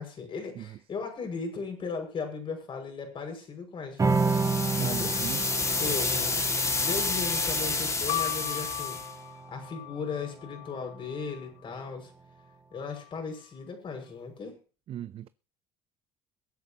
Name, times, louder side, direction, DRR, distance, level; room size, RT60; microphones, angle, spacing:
voice 1, 0.0-4.4 4.7-5.2 5.8-9.0 9.5-12.1 12.7-14.6, left 5 dB, 45° left, 6.1 m, -37 dB
sound 1, 4.0-10.7, right 4 dB, 25° right, 3.4 m, -32 dB
sound 2, 4.1-9.1, left 3 dB, 25° left, 2.3 m, -29 dB
voice 2, 4.8-5.4 14.9-15.3, right 11 dB, 50° right, 0.5 m, -36 dB
sound 3, 8.1-11.9 12.7-13.5, left 20 dB, 70° left, 0.5 m, -38 dB
22.5 x 8.9 x 3.0 m
hypercardioid pair, 65°, 12 cm